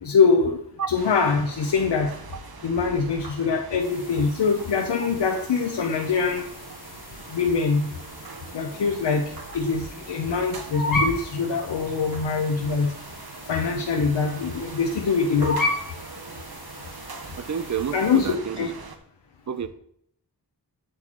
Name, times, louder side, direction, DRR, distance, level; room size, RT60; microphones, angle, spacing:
voice 1, 0.0-0.6 0.9-2.1 2.6-6.4 7.3-7.9 8.5-9.2 9.5-12.9 13.5-15.6 17.9-18.7, left 5 dB, 80° left, 2 dB, 0.9 m, -23 dB
sound 1, 1.0-19.0, right 4 dB, 60° right, 1.1 m, -42 dB
sound 2, 3.8-18.4, left 2 dB, 50° left, 1.5 m, -36 dB
voice 2, 17.4-18.7 19.5-19.7, right 7 dB, 45° right, 12 dB, 0.7 m, -29 dB
8.2 x 7.7 x 3.1 m, 0.69 s
wide cardioid pair, 100°, 41 cm